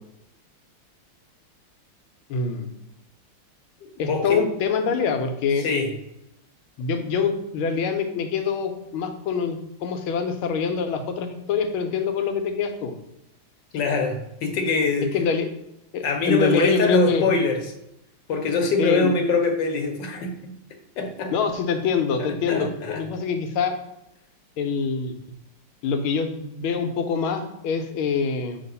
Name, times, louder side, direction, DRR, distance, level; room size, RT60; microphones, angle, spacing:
voice 1, 2.3-2.7 4.0-5.7 6.8-12.9 15.1-15.5 15.9-17.2 18.8-19.2 21.3-23.7 24.6-25.1 25.8-28.6, left 6 dB, 80° left, 6 dB, 1.6 m, -25 dB
voice 2, 4.0-4.4 5.6-5.9 13.7-15.2 16.0-17.7 18.3-20.5 21.0-21.3 22.5-23.0, left 3 dB, 65° left, 4 dB, 1.4 m, -23 dB
5.8 x 3.0 x 5.4 m, 0.87 s
omnidirectional pair, 2.3 m